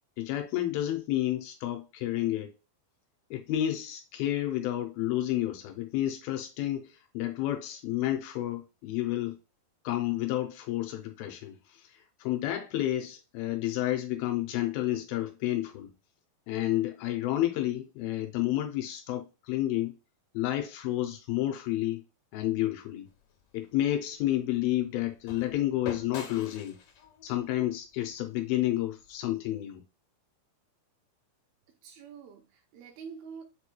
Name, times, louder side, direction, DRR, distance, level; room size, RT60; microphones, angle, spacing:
voice 1, 0.2-2.5 3.3-9.4 9.8-15.9 16.5-19.9 20.3-22.0 22.3-23.1 23.5-26.8 27.2-29.8, left 14 dB, 80° left, 2.3 m, -30 dB
sound 1, 23.1-29.2, left 6 dB, 65° left, 2.3 m, -47 dB
voice 2, 31.7-33.4, right 6 dB, 80° right, 2.4 m, -46 dB
6.7 x 3.0 x 2.2 m
omnidirectional pair, 4.4 m